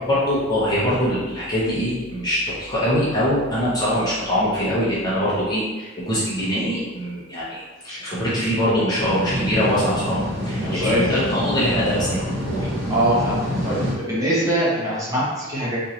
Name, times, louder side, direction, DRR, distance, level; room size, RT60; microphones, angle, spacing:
voice 1, 0.1-12.7, equal, 20° left, -9 dB, 0.8 m, -23 dB
sound 1, 8.9-13.9, equal, 45° right, 1.2 m, -26 dB
voice 2, 10.7-11.2 12.9-15.8, right 1 dB, 15° right, -8 dB, 1.0 m, -23 dB
4.5 x 2.6 x 2.9 m, 1.3 s
head